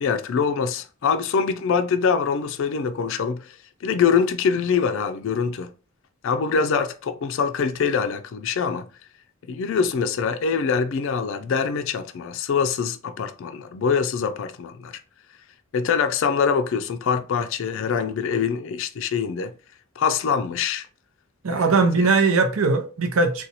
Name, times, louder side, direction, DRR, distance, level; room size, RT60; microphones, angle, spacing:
voice 1, 0.0-5.7 6.2-8.8 9.5-15.0 15.7-19.5 20.0-20.9 21.5-21.6 22.0-22.1, left 6 dB, 60° left, 0.4 m, -24 dB
voice 2, 21.4-23.5, right 4 dB, 80° right, 0.7 m, -20 dB
3.9 x 2.3 x 2.8 m
head